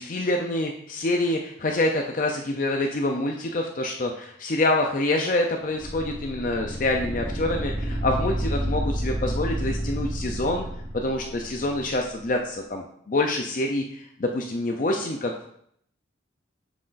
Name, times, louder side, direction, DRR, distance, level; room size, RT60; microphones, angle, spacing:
voice 1, 0.0-10.7 10.9-15.5, left 2 dB, 45° left, 2 dB, 0.5 m, -26 dB
sound 1, 5.8-12.0, equal, 15° right, 0.9 m, -30 dB
7.7 x 6.2 x 2.5 m, 0.67 s
head